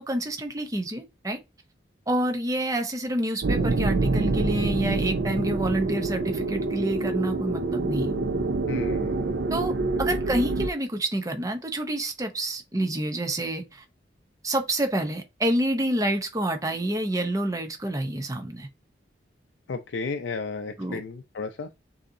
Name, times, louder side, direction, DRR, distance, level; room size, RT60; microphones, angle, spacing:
voice 1, 0.0-1.4 2.1-8.2 9.5-9.7 10.0-13.8 14.4-18.7 20.8-21.0, right 1 dB, 20° right, 0.7 m, -28 dB
sound 1, 3.4-10.7, right 3 dB, 70° right, 0.5 m, -26 dB
voice 2, 8.7-9.4 19.7-21.7, left 4 dB, 75° left, 0.4 m, -33 dB
6.3 x 2.8 x 2.6 m
head